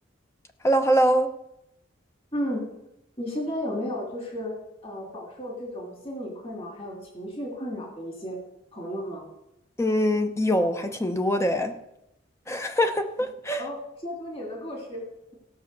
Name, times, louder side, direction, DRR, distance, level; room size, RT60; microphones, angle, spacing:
voice 1, 0.6-1.3 9.8-11.7 12.5-13.6, equal, 15° left, 0.8 m, -23 dB
voice 2, 2.3-2.6 3.2-4.5 4.8-8.4 8.7-9.2 13.6-15.0, equal, 30° left, 2.7 m, -33 dB
16.5 x 5.7 x 6.7 m
head